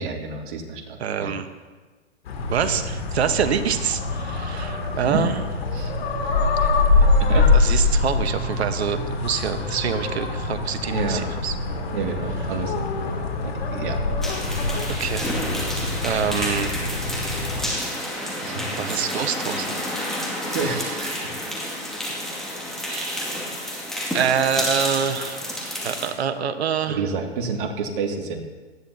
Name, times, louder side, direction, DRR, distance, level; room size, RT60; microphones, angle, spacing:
voice 1, 0.0-1.3 5.1-5.2 5.7-5.9 6.6-6.7 7.2-7.5 10.9-11.3 11.9-12.7 13.4-14.0 18.4-18.8 20.5-21.1 26.9-28.4, right 4 dB, 50° right, 2 dB, 2.3 m, -28 dB
voice 2, 1.0-1.5 2.5-5.4 7.5-11.6 15.0-15.5 16.0-16.7 18.8-19.7 22.9-23.4 24.1-25.4 25.8-27.0, right 7 dB, 70° right, 9 dB, 1.3 m, -26 dB
sound 1, 2.3-17.7, left 3 dB, 65° left, 2.7 m, -24 dB
sound 2, 14.2-26.1, left 1 dB, ahead, 2.3 m, -30 dB
18.5 x 14.0 x 2.9 m, 1.4 s
hypercardioid pair, 135°, 33 cm